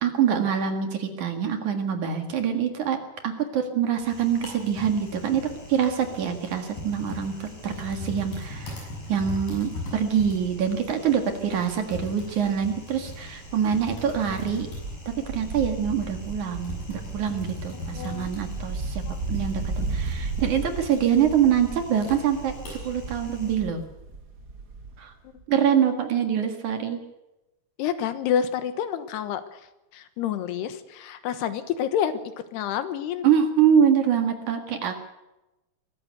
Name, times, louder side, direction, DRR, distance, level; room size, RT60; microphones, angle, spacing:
voice 1, 0.0-14.7 15.2-19.0 19.3-23.8 25.0-25.1 25.5-27.0 33.2-35.0, right 8 dB, 55° right, 6 dB, 2.9 m, -25 dB
Typing, 3.9-23.5, left 2 dB, 55° left, 8.5 m, -40 dB
Wind, 8.3-8.4 8.7-8.8 9.1-12.6 12.9-25.1 25.4-25.5, right 3 dB, 70° right, 0.9 m, -36 dB
voice 2, 17.9-18.5 19.1-19.2 25.2-25.3 27.8-29.6 29.9-32.2 32.5-33.3, left 9 dB, 80° left, 11 dB, 3.3 m, -28 dB
23.0 x 14.0 x 8.1 m, 0.96 s
omnidirectional pair, 4.7 m